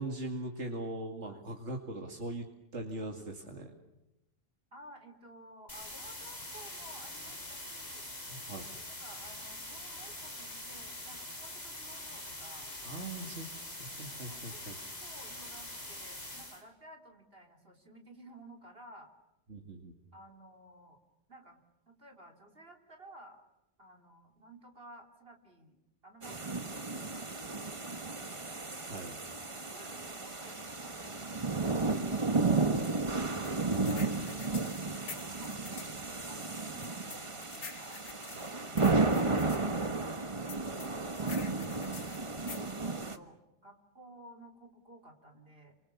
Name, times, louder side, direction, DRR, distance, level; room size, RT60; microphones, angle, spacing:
voice 1, 0.0-2.5 2.7-3.7 8.3-8.7 12.8-14.7 19.5-19.9 28.9-29.2 41.6-42.1, right 2 dB, 80° right, 2 dB, 2.7 m, -41 dB
voice 2, 4.7-8.1 8.9-12.7 13.7-14.6 15.0-19.1 20.1-21.0 21.3-21.6 21.9-23.4 23.8-25.8 26.0-28.2 29.4-32.8 35.1-39.0 42.3-45.8, right 1 dB, 55° right, 3 dB, 4.1 m, -55 dB
sound 1, 5.7-16.6, left 1 dB, 35° left, 4.6 m, -44 dB
sound 2, 26.2-43.2, right 3 dB, 25° right, 1.5 m, -33 dB
sound 3, 33.4-36.0 36.8-39.6 40.5-42.7, left 5 dB, 80° left, 1.9 m, -47 dB
29.5 x 26.5 x 7.1 m, 0.90 s
omnidirectional pair, 1.2 m